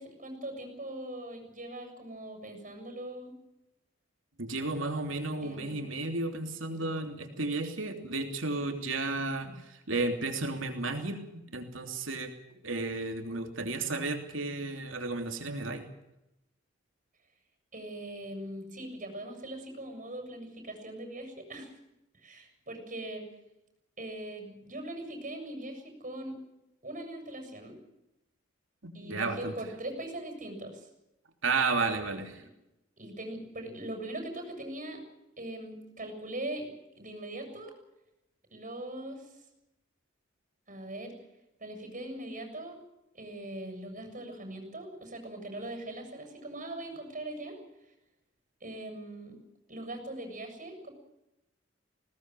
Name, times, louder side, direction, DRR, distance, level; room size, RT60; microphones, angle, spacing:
voice 1, 0.0-3.3 5.4-5.9 17.7-21.7 22.2-23.3 24.0-26.4 26.8-27.8 28.9-30.8 32.4-32.5 33.0-35.0 35.4-37.7 38.5-39.3 40.7-41.1 41.6-42.8 43.1-47.6 48.6-49.4 49.7-50.9, right 1 dB, 40° right, 5 dB, 7.0 m, -41 dB
voice 2, 4.4-12.3 12.6-15.9 28.8-29.5 31.4-32.4, right 3 dB, 75° right, 5 dB, 3.2 m, -33 dB
21.0 x 18.5 x 7.7 m, 0.90 s
head